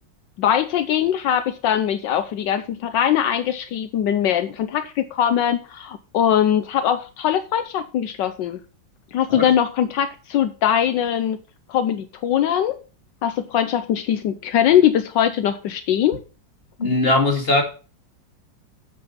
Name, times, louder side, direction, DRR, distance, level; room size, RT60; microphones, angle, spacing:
voice 1, 0.4-8.6 9.1-11.4 11.7-12.8 13.2-16.2, left 10 dB, 80° left, 1.3 m, -21 dB
voice 2, 16.8-17.6, left 2 dB, 30° left, 2.4 m, -19 dB
7.8 x 7.3 x 5.5 m
omnidirectional pair, 2.0 m